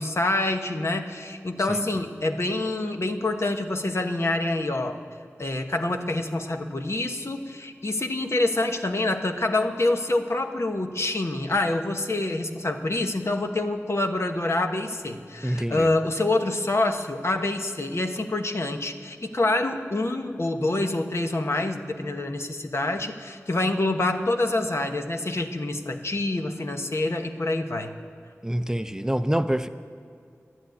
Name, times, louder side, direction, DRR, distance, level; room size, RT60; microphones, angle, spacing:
voice 1, 0.0-5.0 5.4-27.9, left 2 dB, 55° left, 5 dB, 1.1 m, -26 dB
voice 2, 1.7-2.0 15.4-15.9 28.4-29.7, right 1 dB, 10° right, 10 dB, 0.5 m, -26 dB
11.0 x 11.0 x 9.3 m, 2.2 s
wide cardioid pair, 40°, 5 cm